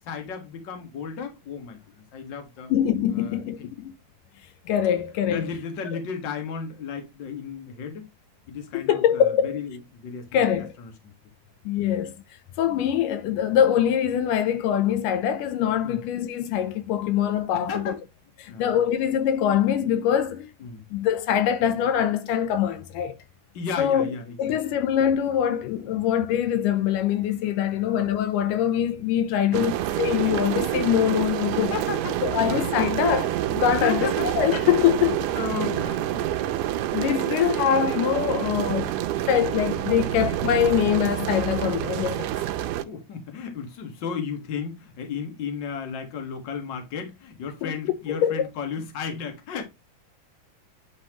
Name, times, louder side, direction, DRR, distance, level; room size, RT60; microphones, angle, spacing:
voice 1, 0.0-2.7 3.1-3.7 5.2-8.1 8.5-10.5 10.8-11.1 15.8-16.0 17.5-18.0 18.5-18.7 20.6-20.8 23.5-24.8 25.9-26.1 27.7-27.9 29.5-29.7 31.7-32.7 33.8-36.3 38.7-38.9 42.9-49.6, left 6 dB, 45° left, 1.8 m, -34 dB
voice 2, 2.7-3.9 4.7-5.5 8.7-9.6 10.3-10.7 11.7-12.1 12.6-17.9 18.4-20.5 20.9-23.2 23.8-31.7 32.2-35.3 36.9-38.9 39.3-42.3 47.6-47.7 48.1-48.5, left 9 dB, 85° left, 2.3 m, -23 dB
sound 1, 29.5-42.8, right 13 dB, 80° right, 2.0 m, -27 dB
9.7 x 4.3 x 3.0 m
omnidirectional pair, 3.7 m